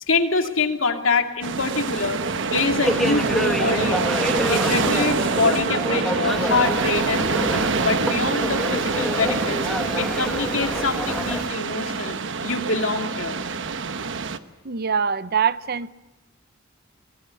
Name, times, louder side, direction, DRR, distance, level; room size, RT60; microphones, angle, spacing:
voice 1, 0.1-2.2 2.5-4.2 4.5-9.6 10.0-12.2 12.4-13.4, left 4 dB, 75° left, 2.6 m, -25 dB
sound 1, 1.4-14.4, right 4 dB, 65° right, 1.1 m, -25 dB
sound 2, 2.8-11.4, equal, ahead, 1.1 m, -28 dB
sound 3, 6.3-11.5, left 2 dB, 50° left, 3.1 m, -41 dB
voice 2, 14.6-15.9, right 6 dB, 50° right, 0.7 m, -24 dB
24.0 x 21.5 x 8.3 m
head